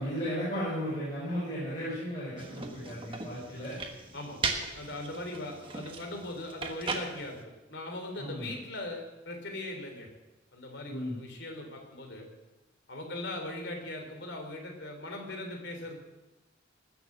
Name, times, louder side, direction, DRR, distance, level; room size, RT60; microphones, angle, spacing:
voice 1, 0.0-3.8 8.2-8.5 10.9-11.2, equal, 30° left, -9 dB, 7.0 m, -35 dB
sound 1, 2.4-7.4, right 4 dB, 25° right, 1.3 m, -38 dB
voice 2, 4.7-7.4 7.7-10.1 10.5-12.3 12.9-16.0, left 1 dB, 60° left, 3 dB, 3.3 m, -39 dB
20.0 x 7.1 x 7.6 m, 1.1 s
head